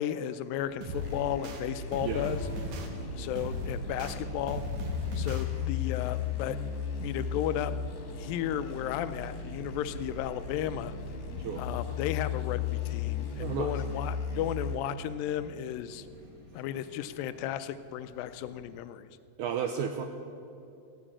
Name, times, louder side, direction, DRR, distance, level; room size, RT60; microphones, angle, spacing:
voice 1, 0.0-2.4 3.2-4.6 5.2-6.6 7.0-7.7 8.1-10.9 11.6-16.1 16.5-19.1, left 11 dB, 80° left, 12 dB, 2.2 m, -34 dB
sound 1, 0.5-18.5, equal, 30° right, 2.1 m, -54 dB
sound 2, 0.8-1.6 1.9-2.9 3.3-4.2 4.5-5.4, equal, 60° right, 2.6 m, -36 dB
sound 3, 1.0-14.8, left 6 dB, 65° left, 3.1 m, -36 dB
voice 2, 2.0-2.3 11.4-11.6 13.4-13.7 19.4-20.1, right 8 dB, 80° right, 6 dB, 1.8 m, -33 dB
15.5 x 9.0 x 8.7 m, 2.7 s
omnidirectional pair, 4.2 m